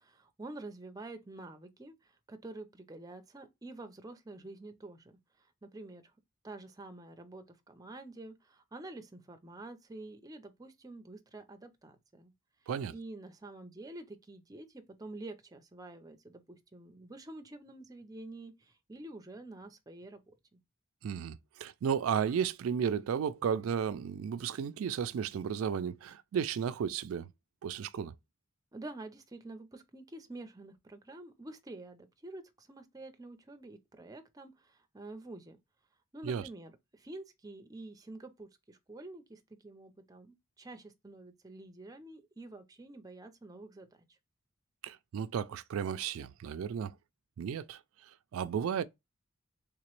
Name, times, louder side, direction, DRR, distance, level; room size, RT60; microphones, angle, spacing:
voice 1, 0.0-5.1 5.6-6.1 6.4-12.3 12.9-20.6 28.7-35.6 36.1-43.9, right 2 dB, 20° right, 0.5 m, -48 dB
voice 2, 21.0-27.3 27.6-28.1 36.2-36.5 44.8-46.9 47.4-47.8 48.3-48.8, right 7 dB, 85° right, 0.3 m, -33 dB
3.5 x 2.9 x 3.0 m
head